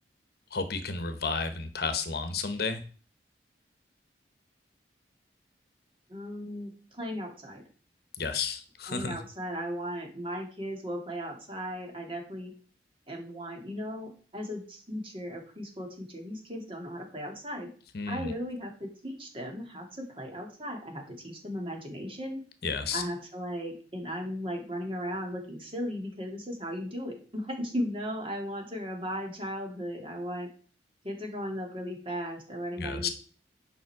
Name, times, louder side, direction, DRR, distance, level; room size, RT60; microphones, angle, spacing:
voice 1, 0.5-2.8 8.2-9.2 17.9-18.3 22.6-23.0 32.8-33.1, left 4 dB, 60° left, 9 dB, 1.0 m, -32 dB
voice 2, 6.1-7.6 8.9-12.5 13.1-17.7 18.1-22.4 22.9-30.5 31.0-33.1, equal, 30° right, 1 dB, 2.3 m, -36 dB
9.4 x 5.6 x 4.7 m, 0.40 s
head